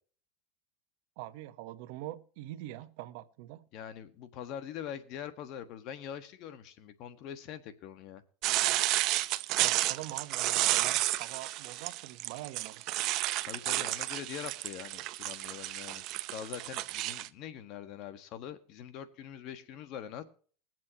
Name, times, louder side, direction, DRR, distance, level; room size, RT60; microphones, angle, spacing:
voice 1, 1.2-3.7 9.6-13.0, right 15 dB, 65° right, 1.0 m, -43 dB
voice 2, 3.7-8.2 13.4-16.0 16.3-20.2, left 9 dB, 50° left, 1.5 m, -43 dB
sound 1, 8.4-17.3, right 16 dB, 50° right, 0.6 m, -31 dB
21.5 x 7.5 x 2.9 m
supercardioid pair, 130°, 0 cm